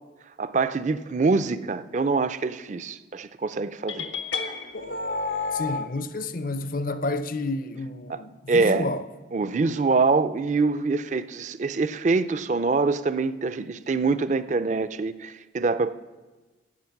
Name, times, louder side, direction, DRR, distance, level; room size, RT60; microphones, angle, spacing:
voice 1, 0.4-4.1 8.1-8.2 8.5-8.9 9.3-15.9, right 4 dB, 40° right, 0.4 m, -24 dB
sound 1, 3.9-5.9, left 4 dB, 85° left, 1.1 m, -30 dB
voice 2, 5.5-9.1, left 2 dB, 45° left, 0.6 m, -30 dB
15.5 x 7.9 x 5.9 m
head